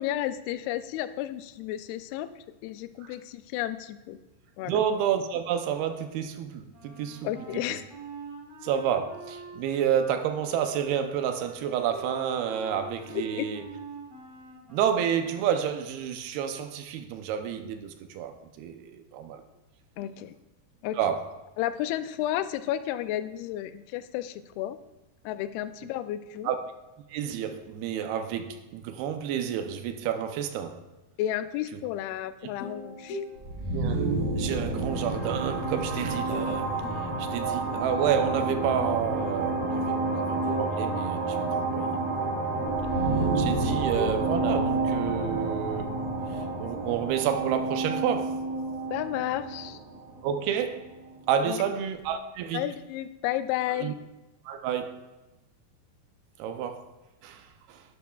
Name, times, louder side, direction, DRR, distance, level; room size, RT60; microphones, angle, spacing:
voice 1, 0.0-2.3 2.6-4.2 4.6-4.8 7.2-7.8 13.1-13.5 20.0-20.3 20.8-21.0 21.6-24.8 25.2-26.5 31.2-33.2 48.9-49.8 51.4-51.6 52.5-54.0, left 13 dB, 85° left, 2.4 m, -32 dB
voice 2, 4.7-7.2 8.6-13.6 14.7-19.4 21.0-21.3 26.4-26.6 27.1-30.8 33.7-36.7 37.2-42.0 43.4-45.9 46.6-48.4 50.2-50.9 51.3-52.6 53.8-53.9 54.5-55.1 56.4-56.8 57.2-57.4 57.7-57.8, right 8 dB, 80° right, 2.6 m, -30 dB
Wind instrument woodwind instrument, 6.7-15.6, right 3 dB, 25° right, 4.0 m, -46 dB
sound 1, 32.6-34.9 36.3-36.6 36.8-38.1 39.8-41.5 43.4-45.7, left 2 dB, 60° left, 3.2 m, -43 dB
sound 2, 33.4-51.0, right 3 dB, 50° right, 4.3 m, -29 dB
11.5 x 11.0 x 2.3 m
omnidirectional pair, 4.6 m